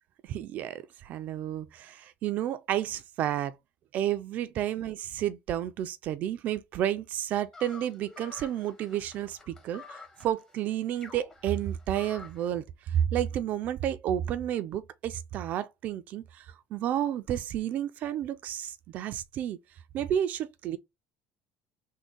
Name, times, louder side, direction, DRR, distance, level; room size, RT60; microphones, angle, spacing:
voice 1, 0.3-3.5 3.9-12.6 12.9-16.4 16.7-19.6 19.9-20.8, right 11 dB, 50° right, 0.3 m, -31 dB
sound 1, 7.5-12.5, left 4 dB, 20° left, 0.8 m, -49 dB
3.6 x 2.1 x 3.8 m
cardioid pair, 145°, 3 cm